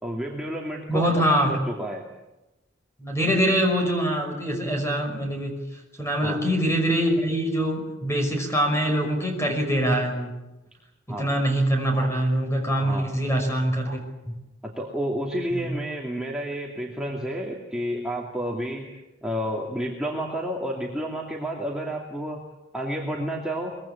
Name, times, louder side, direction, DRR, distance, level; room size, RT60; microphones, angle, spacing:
voice 1, 0.0-2.0 6.2-6.4 11.1-11.3 12.8-13.1 14.6-18.9 19.2-22.4 22.7-23.8, equal, 5° right, -3 dB, 2.5 m, -30 dB
voice 2, 0.9-1.5 3.0-5.6 6.0-10.3 11.2-14.0 14.3-14.4 15.5-15.7, right 1 dB, 15° left, 4 dB, 5.7 m, -24 dB
23.5 x 22.0 x 8.6 m, 0.99 s
head